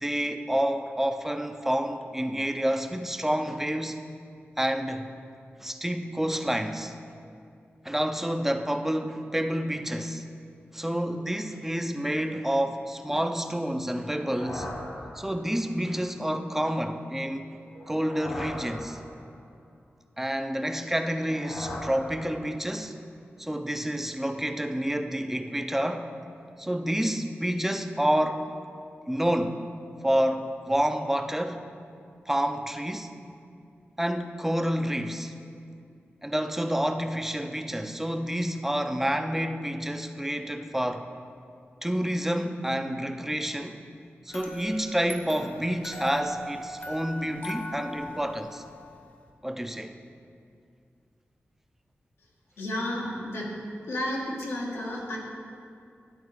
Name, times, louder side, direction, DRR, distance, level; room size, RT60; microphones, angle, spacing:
voice 1, 0.0-4.0 4.6-5.1 5.6-6.9 7.8-10.2 10.7-14.7 15.2-17.5 17.9-19.0 20.2-23.0 23.4-26.1 26.6-28.5 29.1-29.6 30.0-31.6 32.3-33.1 34.0-35.3 36.2-41.1 41.8-43.8 44.3-48.6 49.4-49.9, equal, 5° right, 7 dB, 0.5 m, -29 dB
sound 1, 13.9-15.7 17.6-19.5 20.9-22.8, left 1 dB, 65° left, 1.8 m, -40 dB
sound 2, 44.3-49.3, left 1 dB, 40° left, 0.9 m, -39 dB
voice 2, 52.6-53.5 53.8-55.2, left 1 dB, 85° left, -3 dB, 1.4 m, -32 dB
10.5 x 3.9 x 4.8 m, 2.4 s
cardioid pair, 65°, 4 cm